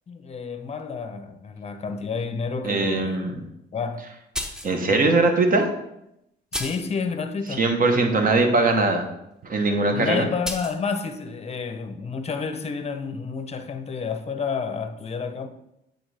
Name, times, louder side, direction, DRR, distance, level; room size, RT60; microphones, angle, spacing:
voice 1, 0.1-3.3 3.7-4.1 4.9-5.0 6.5-7.6 9.9-15.5, left 5 dB, 30° left, 0.7 m, -30 dB
voice 2, 2.6-3.3 4.6-5.7 7.6-9.0 9.4-10.3, right 3 dB, 45° right, 1.1 m, -20 dB
sound 1, 4.3-4.8 5.6-5.7 6.5-6.9 10.4-10.8, equal, 5° right, 0.8 m, -31 dB
8.5 x 4.0 x 3.3 m
cardioid pair, 90°, 20 cm